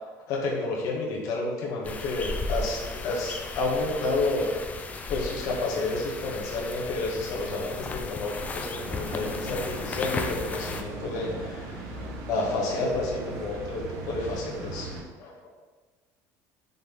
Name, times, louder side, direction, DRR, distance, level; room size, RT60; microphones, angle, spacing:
voice 1, 0.3-4.5 5.1-12.0 12.3-14.9 15.2-15.3, left 2 dB, 60° left, -3 dB, 1.7 m, -30 dB
sound 1, 1.8-10.8, left 3 dB, 20° left, 0.5 m, -35 dB
sound 2, 8.8-15.0, right 2 dB, 75° right, 1.3 m, -38 dB
5.7 x 4.0 x 5.5 m, 1.3 s
cardioid pair, 140°, 7 cm